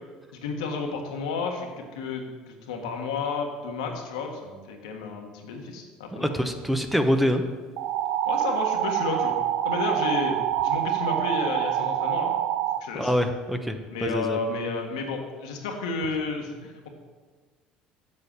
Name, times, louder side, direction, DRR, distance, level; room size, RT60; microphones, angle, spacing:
voice 1, 0.3-6.4 8.2-9.4 9.6-10.4 10.6-12.3 12.8-13.1 13.9-16.9, left 4 dB, 85° left, 2 dB, 1.5 m, -31 dB
voice 2, 6.1-7.4 13.0-14.4, equal, 5° right, 6 dB, 1.0 m, -25 dB
sound 1, 7.8-12.8, right 11 dB, 70° right, 0.5 m, -26 dB
7.7 x 7.2 x 7.3 m, 1.4 s
hypercardioid pair, 75°, 3 cm